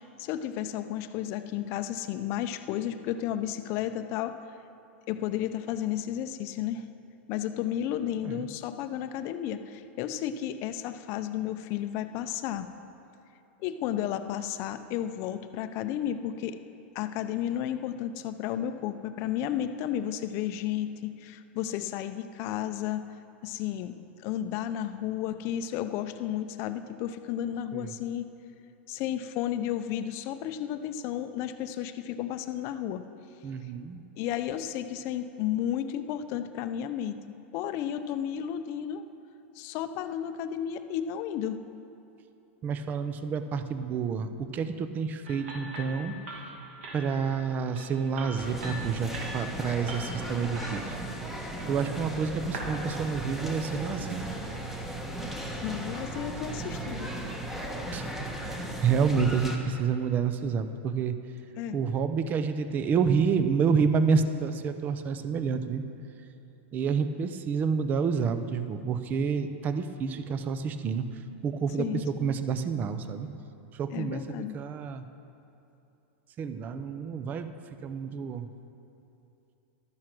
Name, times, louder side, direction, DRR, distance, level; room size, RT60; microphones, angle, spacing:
voice 1, 0.2-4.3 5.1-6.9 7.3-12.7 13.6-16.6 16.9-23.0 23.4-24.0 24.2-28.3 28.9-33.0 34.2-37.2 37.5-39.0 39.6-41.6 55.6-57.1 61.6-61.8 71.8-72.4 73.9-74.6, left 11 dB, 40° left, 10 dB, 0.6 m, -32 dB
voice 2, 33.4-34.0 42.6-46.2 46.9-51.0 51.4-54.3 57.9-58.1 58.4-61.2 61.7-65.8 66.7-73.3 73.7-75.0 76.4-77.5 77.8-78.5, right 6 dB, 25° right, 10 dB, 0.6 m, -29 dB
sound 1, 45.3-52.8, right 1 dB, 75° right, 2.6 m, -43 dB
sound 2, 48.4-59.6, right 1 dB, 5° right, 1.1 m, -36 dB
12.5 x 9.7 x 6.1 m, 2.9 s
supercardioid pair, 145°, 7 cm